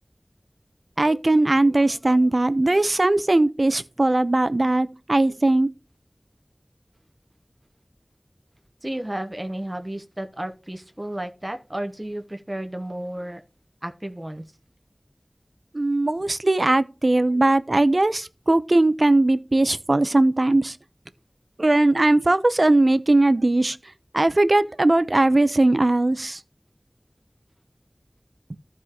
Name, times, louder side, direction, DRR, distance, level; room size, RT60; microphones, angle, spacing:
voice 1, 1.0-5.7 15.7-20.8 21.6-23.8 24.1-26.4 28.5-28.6, right 2 dB, 60° right, 0.6 m, -19 dB
voice 2, 8.8-13.4 13.8-14.4, right 1 dB, 30° right, 0.9 m, -32 dB
14.5 x 4.9 x 2.9 m
wide cardioid pair, 40°, 0 cm